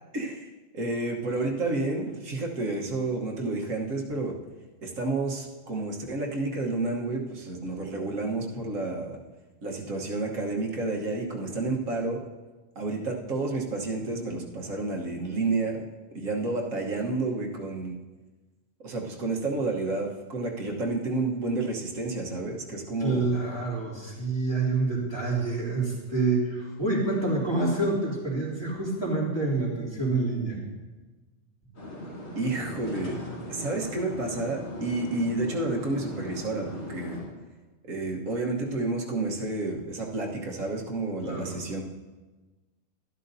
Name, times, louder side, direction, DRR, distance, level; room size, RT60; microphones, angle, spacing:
voice 1, 0.1-4.3 4.8-9.2 9.6-12.2 12.7-15.8 16.1-18.0 18.8-23.3 32.3-33.1 33.5-37.2 37.9-41.8, right 2 dB, 85° right, -1 dB, 1.7 m, -30 dB
voice 2, 23.0-30.6 41.2-41.6, right 3 dB, 20° left, -6 dB, 2.9 m, -27 dB
sound 1, 31.7-37.2, left 1 dB, 85° left, 4.3 m, -39 dB
12.0 x 12.0 x 2.7 m, 1.2 s
omnidirectional pair, 1.3 m